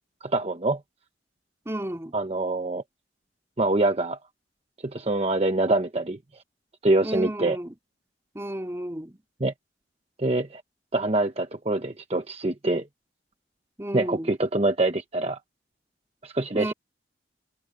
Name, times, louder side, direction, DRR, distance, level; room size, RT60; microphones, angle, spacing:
voice 1, 0.2-0.8 2.1-2.8 3.6-4.2 4.8-6.2 6.8-7.6 9.4-9.5 10.2-10.6 10.9-12.9 13.9-15.4 16.2-16.7, right 2 dB, 35° right, 1.0 m, -25 dB
voice 2, 1.7-2.1 7.0-7.7 8.3-9.2 13.8-14.3 16.5-16.7, right 1 dB, 15° right, 2.6 m, -32 dB
head